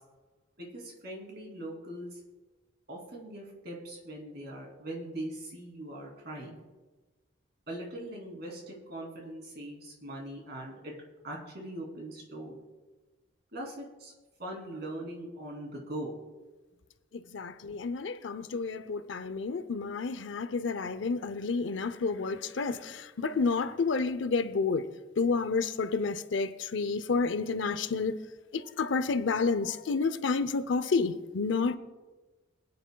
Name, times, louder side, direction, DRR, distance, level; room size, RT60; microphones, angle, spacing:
voice 1, 0.6-2.2 2.9-6.6 7.7-10.9 11.2-12.5 13.5-14.1 14.4-16.2, right 1 dB, 55° right, 2.9 m, -41 dB
voice 2, 17.1-24.9 25.2-28.2 28.5-31.8, left 4 dB, 70° left, 0.6 m, -30 dB
22.5 x 9.7 x 2.3 m
head